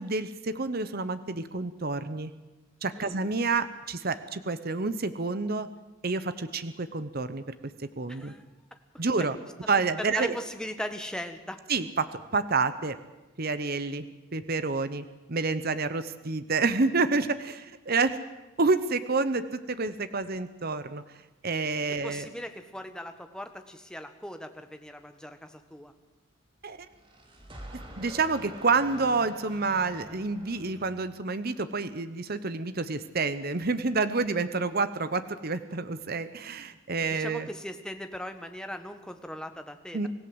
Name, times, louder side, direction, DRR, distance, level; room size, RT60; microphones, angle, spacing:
voice 1, 0.0-2.3 2.8-5.7 6.0-7.4 7.8-8.3 9.0-9.4 9.7-10.4 11.7-13.0 13.4-14.1 14.3-18.2 18.6-21.0 21.4-22.3 26.6-26.8 28.0-37.5 39.9-40.1, right 3 dB, 45° right, 12 dB, 0.9 m, -28 dB
voice 2, 8.1-8.4 8.7-8.8 10.0-11.6 21.9-25.9 37.0-40.0, equal, 5° left, 6 dB, 1.4 m, -39 dB
sound 1, 26.8-31.4, equal, 25° right, 2.8 m, -46 dB
25.5 x 16.5 x 7.9 m, 1.1 s
head